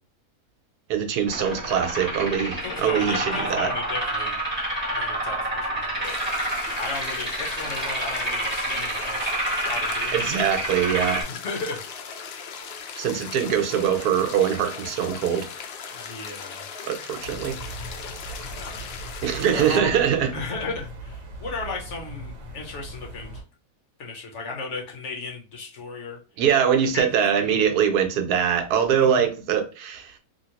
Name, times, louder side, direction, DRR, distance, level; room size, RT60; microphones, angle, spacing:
voice 1, 0.9-3.7 10.1-11.2 13.0-15.5 16.9-17.6 19.2-20.3 26.4-30.2, right 8 dB, 90° right, 1.2 m, -23 dB
sound 1, 1.3-11.2, right 1 dB, 5° right, 1.5 m, -28 dB
voice 2, 2.6-4.4 4.9-6.5 6.8-10.2 11.3-11.8 15.9-16.6 18.5-18.8 19.4-20.0 20.3-23.4 24.0-26.2 26.9-27.7 29.0-29.2, left 4 dB, 55° left, 1.0 m, -35 dB
sound 2, 6.0-19.8, left 6 dB, 75° left, 0.5 m, -38 dB
sound 3, 17.2-23.4, right 1 dB, 55° right, 1.1 m, -39 dB
2.8 x 2.8 x 2.8 m
omnidirectional pair, 1.6 m